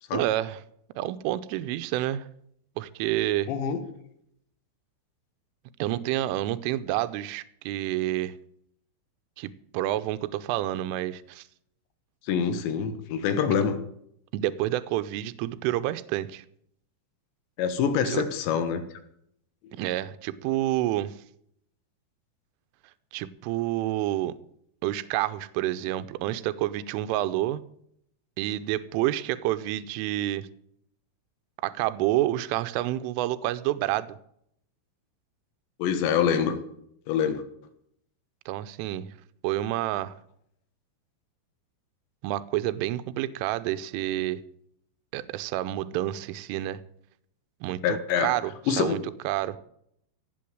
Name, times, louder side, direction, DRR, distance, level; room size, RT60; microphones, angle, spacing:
voice 1, 0.1-0.6 1.0-2.3 2.8-3.5 5.8-8.3 9.4-11.4 14.3-16.4 18.1-18.2 19.7-21.1 23.1-24.3 24.8-27.6 28.4-30.5 31.6-34.2 38.5-39.1 39.4-40.2 42.2-44.4 45.1-46.8 47.6-48.5 48.8-49.0 49.2-49.6, right 14 dB, 80° right, 3.2 m, -28 dB
voice 2, 3.5-3.8 12.2-13.8 17.6-18.9 35.8-36.6 37.1-37.4 47.8-48.3 48.7-49.0, left 7 dB, 70° left, 3.4 m, -25 dB
17.0 x 8.0 x 7.8 m
omnidirectional pair, 5.8 m